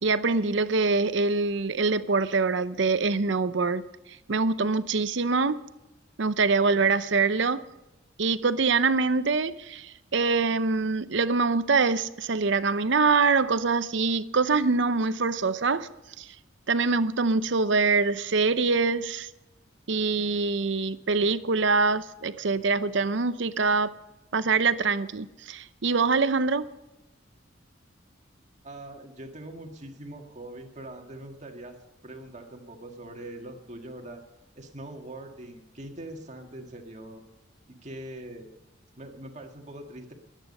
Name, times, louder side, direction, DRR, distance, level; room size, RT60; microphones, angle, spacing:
voice 1, 0.0-3.8 4.3-5.6 6.2-7.6 8.2-15.9 16.2-16.3 16.7-19.3 19.9-23.9 24.3-26.7, right 4 dB, 65° right, 0.7 m, -24 dB
voice 2, 28.6-31.8 32.0-34.2 34.6-37.2 37.8-38.5 39.0-40.1, right 1 dB, 35° right, 1.9 m, -42 dB
22.5 x 9.2 x 5.5 m
head